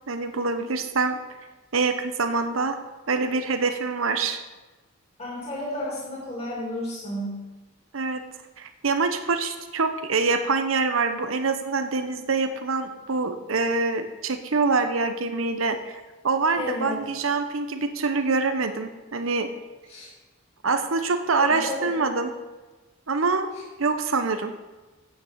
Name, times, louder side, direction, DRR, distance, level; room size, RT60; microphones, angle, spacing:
voice 1, 0.1-1.2 1.7-2.8 3.1-4.4 7.9-8.2 8.6-19.5 20.6-22.3 23.1-23.5 23.8-24.5, right 4 dB, 80° right, 8 dB, 0.9 m, -25 dB
voice 2, 5.2-7.4 16.5-17.0 19.9-20.1 21.4-22.2, left 1 dB, 30° left, -6 dB, 3.0 m, -32 dB
9.0 x 6.6 x 7.4 m, 1.2 s
head